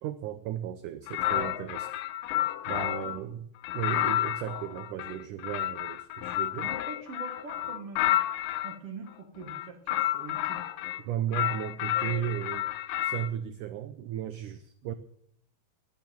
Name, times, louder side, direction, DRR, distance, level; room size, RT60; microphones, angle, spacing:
voice 1, 0.0-1.9 2.7-3.5 3.7-6.7 11.0-12.7 13.0-14.9, right 10 dB, 85° right, 11 dB, 1.8 m, -35 dB
sound 1, 1.1-3.2 3.6-8.8 9.4-11.0 11.3-13.3, left 14 dB, 80° left, 2.0 m, -30 dB
voice 2, 6.6-8.2 8.6-10.6 14.8-14.9, right 4 dB, 55° right, 4 dB, 1.7 m, -44 dB
19.0 x 6.9 x 7.5 m, 0.69 s
omnidirectional pair, 4.5 m